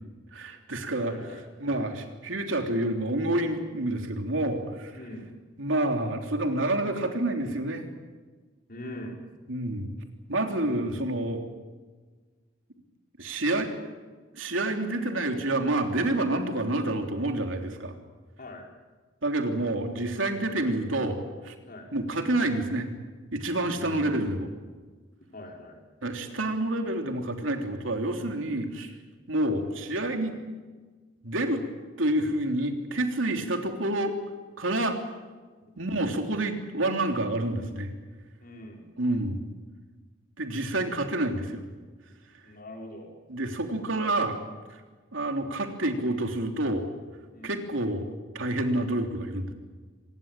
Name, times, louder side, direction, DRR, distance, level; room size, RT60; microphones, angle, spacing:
voice 1, 0.3-1.1 1.6-5.0 5.6-7.9 9.5-9.9 10.3-11.4 13.2-13.7 14.3-17.9 19.2-21.2 21.4-21.5 21.9-22.9 23.3-24.5 26.0-29.0 29.3-30.4 31.2-31.6 32.0-34.2 34.6-35.0 35.8-37.9 39.0-39.5 40.4-41.6 43.3-44.4 44.7-44.8 45.1-46.9 47.4-48.1 48.3-49.5, right 1 dB, 90° right, 4 dB, 3.3 m, -28 dB
voice 2, 1.0-1.8 4.9-5.3 8.7-9.2 18.4-18.7 21.7-21.9 23.8-24.3 25.3-25.8 38.4-38.9 42.4-43.1 47.3-47.5, left 1 dB, 50° left, 1 dB, 5.0 m, -42 dB
25.5 x 20.0 x 9.1 m, 1.4 s
head